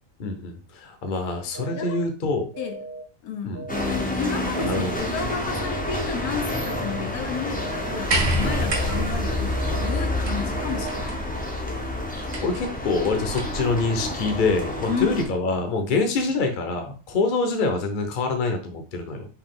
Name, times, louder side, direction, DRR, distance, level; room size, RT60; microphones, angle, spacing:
voice 1, 0.2-2.5 3.4-3.7 4.6-5.0 12.2-19.3, left 3 dB, 40° left, 0.8 m, -25 dB
sound 1, 1.5-2.0 2.5-3.0 3.5-4.0 4.5-5.0 5.5-6.0 6.5-7.0 7.5-8.0 8.5-9.0 9.5-10.0 10.5-11.0, right 3 dB, 45° right, 1.1 m, -38 dB
voice 2, 3.2-3.6 4.2-11.1 14.9-15.1, left 7 dB, 80° left, 1.2 m, -32 dB
sound 2, 3.7-15.2, left 1 dB, 10° left, 0.5 m, -29 dB
sound 3, 8.1-13.7 14.8-14.9, right 1 dB, 60° right, 1.3 m, -29 dB
4.6 x 2.9 x 3.7 m
omnidirectional pair, 1.5 m